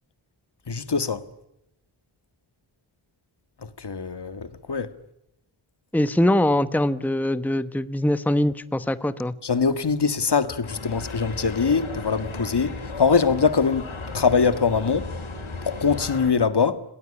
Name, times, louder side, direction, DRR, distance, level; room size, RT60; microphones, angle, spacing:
voice 1, 0.7-1.2 3.8-4.9 9.4-15.1 15.6-16.8, left 5 dB, 55° left, 1.8 m, -23 dB
voice 2, 5.9-9.3, left 1 dB, 5° left, 1.1 m, -22 dB
sound 1, 10.6-16.3, left 3 dB, 80° left, 5.6 m, -35 dB
28.5 x 19.0 x 9.9 m
wide cardioid pair, 95°, 48 cm